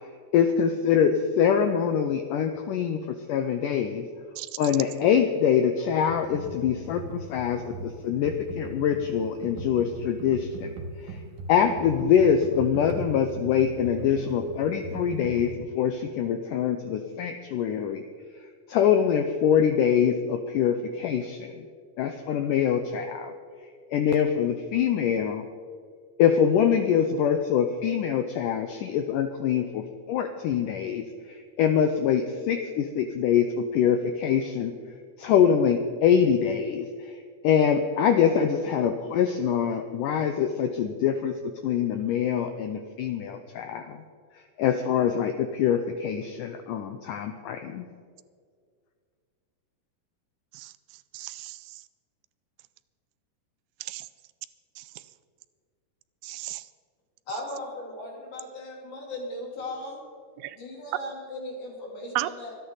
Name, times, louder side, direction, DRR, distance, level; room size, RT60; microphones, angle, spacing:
voice 1, 0.3-4.0 4.6-10.7 11.0-11.2 11.5-18.0 18.7-21.7 22.0-23.3 23.9-25.4 26.2-34.7 35.2-37.2 37.4-41.3 41.6-44.0 44.6-47.9, left 8 dB, 75° left, 7 dB, 2.0 m, -24 dB
Computer keyboard, 6.0-15.5, right 2 dB, 60° right, 2.8 m, -38 dB
voice 2, 51.1-51.8 53.8-54.1 54.8-54.9 56.2-56.7 60.4-60.6 62.2-62.5, right 16 dB, 85° right, 14 dB, 2.4 m, -35 dB
voice 3, 57.3-60.0 60.5-62.5, left 1 dB, 55° left, -2 dB, 4.6 m, -37 dB
24.5 x 9.8 x 4.0 m, 2.1 s
omnidirectional pair, 4.4 m